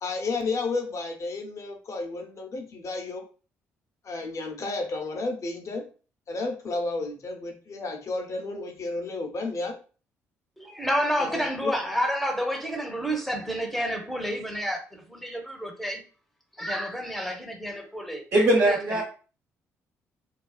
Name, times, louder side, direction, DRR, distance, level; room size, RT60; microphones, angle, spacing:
voice 1, 0.0-3.2 4.0-5.8 6.3-9.8 11.2-11.7, left 3 dB, 50° left, 0.6 m, -32 dB
voice 2, 10.6-16.0 16.6-18.2 18.6-19.0, equal, ahead, 0.7 m, -29 dB
voice 3, 18.3-19.0, right 1 dB, 55° right, 1.2 m, -20 dB
2.4 x 2.3 x 2.3 m
hypercardioid pair, 50°, 7 cm